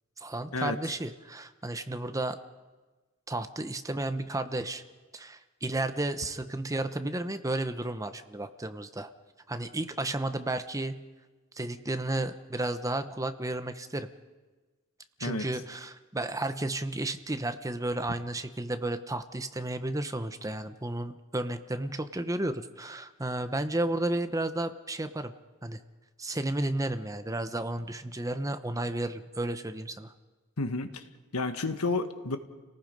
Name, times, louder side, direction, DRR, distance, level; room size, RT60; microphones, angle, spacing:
voice 1, 0.2-2.4 3.3-4.8 5.1-9.1 9.5-11.0 11.6-14.1 15.2-25.3 25.6-25.8 26.2-30.1, right 2 dB, 15° right, 9 dB, 0.9 m, -32 dB
voice 2, 30.6-31.0 31.3-32.4, left 3 dB, 80° left, 8 dB, 1.5 m, -31 dB
29.5 x 18.5 x 5.3 m, 1.2 s
head